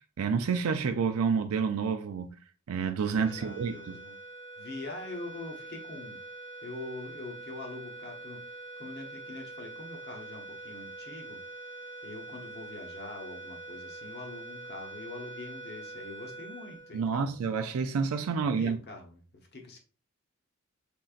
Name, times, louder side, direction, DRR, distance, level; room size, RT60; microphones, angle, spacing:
voice 1, 0.2-2.4 2.7-3.9 16.9-18.8, right 5 dB, 85° right, 0.4 m, -29 dB
sound 1, 3.0-17.6, right 2 dB, 15° left, 1.0 m, -45 dB
voice 2, 3.2-4.1 4.6-6.2 6.6-17.3 18.3-19.8, left 2 dB, 50° left, 1.0 m, -44 dB
5.3 x 3.8 x 2.4 m
head